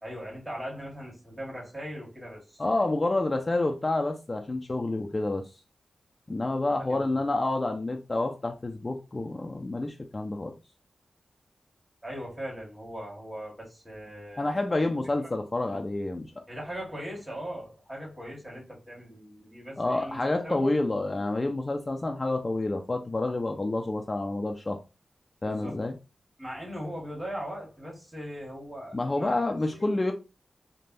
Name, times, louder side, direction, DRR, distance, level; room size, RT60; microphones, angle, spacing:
voice 1, 0.0-2.6 6.9-7.2 12.0-14.8 15.2-15.3 16.5-20.9 25.4-25.8 26.4-30.0, equal, 20° right, 1.4 m, -40 dB
voice 2, 2.6-5.4 6.3-10.5 14.4-16.3 19.8-24.8 25.4-25.9 28.9-30.1, left 2 dB, 35° left, 0.4 m, -28 dB
3.2 x 2.2 x 2.5 m
cardioid pair, 60°, 0 cm